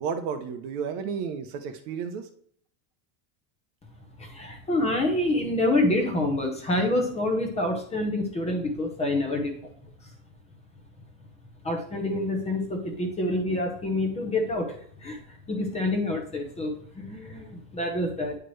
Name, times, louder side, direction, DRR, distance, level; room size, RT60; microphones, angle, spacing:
voice 1, 0.0-2.3, right 6 dB, 45° right, 7 dB, 0.8 m, -32 dB
voice 2, 4.2-9.7 11.6-18.4, left 1 dB, 15° left, 2 dB, 0.8 m, -27 dB
9.7 x 4.5 x 3.1 m, 0.62 s
cardioid pair, 175°, 49 cm